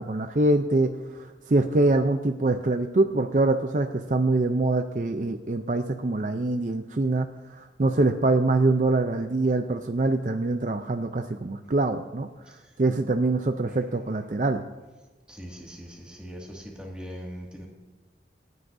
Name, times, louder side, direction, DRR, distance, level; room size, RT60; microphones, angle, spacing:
voice 1, 0.0-7.3 7.6-12.3 12.8-14.6, right 2 dB, 45° right, 6 dB, 0.5 m, -24 dB
voice 2, 15.3-17.7, equal, 5° right, -2 dB, 2.1 m, -40 dB
27.0 x 9.5 x 2.7 m, 1.2 s
head